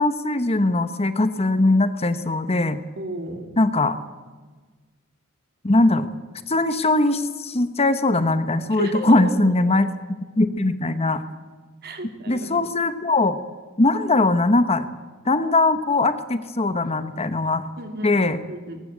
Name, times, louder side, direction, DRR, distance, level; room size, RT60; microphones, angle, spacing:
voice 1, 0.0-2.8 3.6-4.0 5.6-6.1 6.5-9.9 10.4-11.2 12.3-13.4 13.8-14.9 15.2-17.6 18.0-18.4, left 2 dB, 30° left, 11 dB, 1.0 m, -20 dB
voice 2, 3.0-3.6 8.7-9.2 11.8-12.7 17.8-18.1 18.5-18.8, right 1 dB, 45° right, 6 dB, 2.9 m, -33 dB
21.0 x 18.5 x 8.4 m, 1.4 s
head